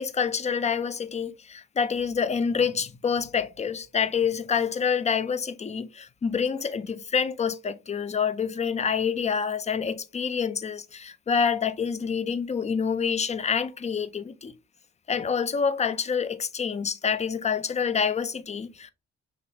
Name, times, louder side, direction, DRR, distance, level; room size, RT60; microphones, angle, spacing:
voice 1, 0.0-14.5 15.1-18.9, left 6 dB, 25° left, 0.4 m, -27 dB
6.0 x 3.0 x 2.8 m
cardioid pair, 90°, 30 cm